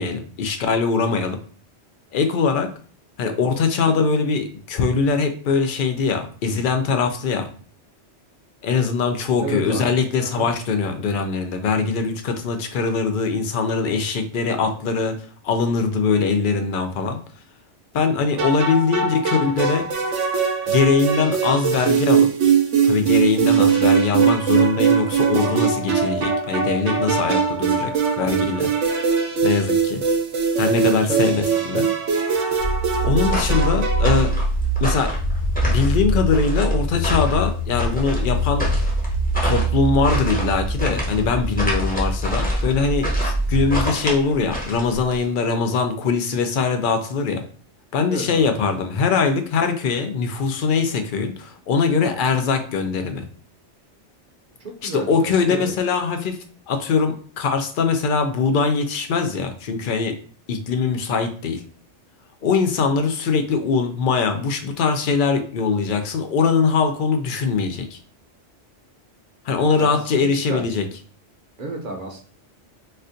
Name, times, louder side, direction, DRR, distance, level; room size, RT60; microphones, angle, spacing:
voice 1, 0.0-1.4 2.1-2.7 3.2-7.5 8.6-15.2 15.4-17.2 17.9-19.8 20.7-22.3 22.8-28.7 29.4-30.0 30.6-31.9 33.0-34.3 34.8-35.1 35.7-38.7 39.4-47.4 47.9-53.3 54.8-56.4 56.7-60.2 60.5-61.6 62.4-68.0 69.5-70.9, left 5 dB, 60° left, 6 dB, 0.6 m, -22 dB
voice 2, 9.4-9.9 10.2-10.5 30.8-31.5 48.1-48.6 54.6-55.7 69.8-70.6 71.6-72.2, right 2 dB, 50° right, 1 dB, 0.8 m, -32 dB
sound 1, 18.4-34.3, right 6 dB, 85° right, 1.1 m, -21 dB
sound 2, 32.6-43.8, right 1 dB, 35° left, 1.1 m, -23 dB
sound 3, 33.3-45.2, equal, 10° left, 0.7 m, -28 dB
4.2 x 2.5 x 2.6 m, 0.43 s
omnidirectional pair, 1.2 m